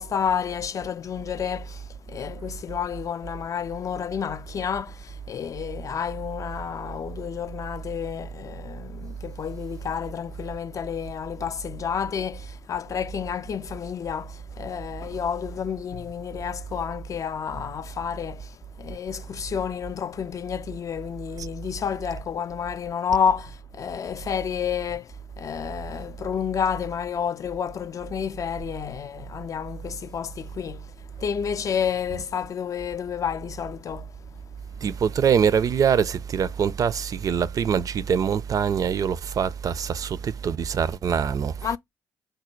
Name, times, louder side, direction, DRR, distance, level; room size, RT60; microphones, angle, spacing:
voice 1, 0.0-34.3 41.6-41.8, left 7 dB, 40° left, 0.3 m, -30 dB
voice 2, 34.8-41.5, right 7 dB, 40° right, 0.4 m, -24 dB
5.1 x 2.2 x 4.3 m
figure-of-eight pair, 45°, 9 cm